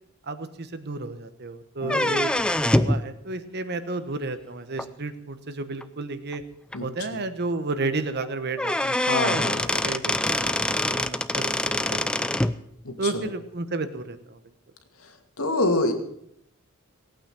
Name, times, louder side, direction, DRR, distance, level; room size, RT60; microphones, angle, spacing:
voice 1, 0.3-2.3 2.8-6.4 6.8-11.5 11.8-12.3 13.0-14.4, right 3 dB, 50° right, 11 dB, 1.2 m, -32 dB
voice 2, 1.8-2.2 6.7-6.9 7.1-7.2 9.0-9.7 12.8-12.9 15.0-15.9, left 2 dB, 85° left, 5 dB, 2.4 m, -26 dB
sound 1, 1.8-3.0 4.8-4.9 5.8-5.9 6.3-6.4 6.7-6.8 8.2-8.3 8.6-12.5, left 1 dB, 5° left, 0.5 m, -24 dB
18.0 x 9.0 x 7.6 m, 0.74 s
head